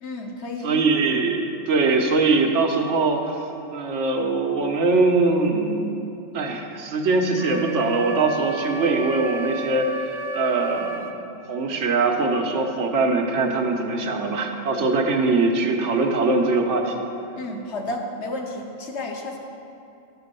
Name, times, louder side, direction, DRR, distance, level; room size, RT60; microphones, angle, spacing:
voice 1, 0.0-0.7 17.3-19.4, left 2 dB, 70° left, 1 dB, 1.3 m, -31 dB
voice 2, 0.6-3.4 3.7-6.0 6.3-9.9 10.3-11.1 11.5-16.9, right 3 dB, 85° right, 3 dB, 1.2 m, -22 dB
Wind instrument woodwind instrument, 7.4-11.2, right 3 dB, 30° right, 0.5 m, -33 dB
11.0 x 4.5 x 6.7 m, 2.7 s
omnidirectional pair, 1.2 m